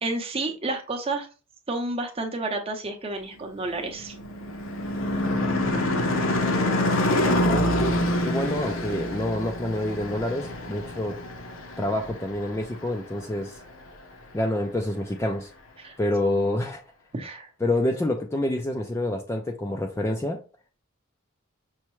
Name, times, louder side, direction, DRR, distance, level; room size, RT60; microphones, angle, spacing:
voice 1, 0.0-1.3 1.7-4.1 15.8-16.0 17.1-17.5, right 2 dB, 30° right, 0.7 m, -30 dB
Car passing by / Truck / Engine, 3.7-12.4, left 1 dB, 65° left, 0.7 m, -26 dB
voice 2, 7.4-11.2 11.8-13.6 14.3-15.5 16.0-16.8 17.6-20.4, left 1 dB, 15° left, 0.3 m, -27 dB
5.6 x 2.1 x 3.0 m
head